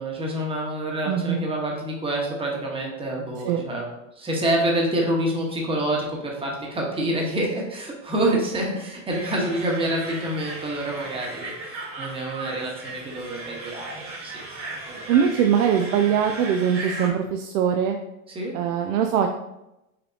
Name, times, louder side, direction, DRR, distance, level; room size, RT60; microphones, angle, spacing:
voice 1, 0.0-3.9 4.2-14.5 14.9-15.1 16.8-17.1 18.3-18.5, right 1 dB, 15° right, -1 dB, 1.1 m, -27 dB
voice 2, 1.1-1.5 3.4-3.6 15.1-18.0 18.5-19.3, right 8 dB, 70° right, 4 dB, 0.6 m, -22 dB
sound 1, 9.1-17.1, right 3 dB, 30° right, 1.5 m, -36 dB
5.6 x 3.3 x 2.7 m, 0.89 s
supercardioid pair, 125°, 42 cm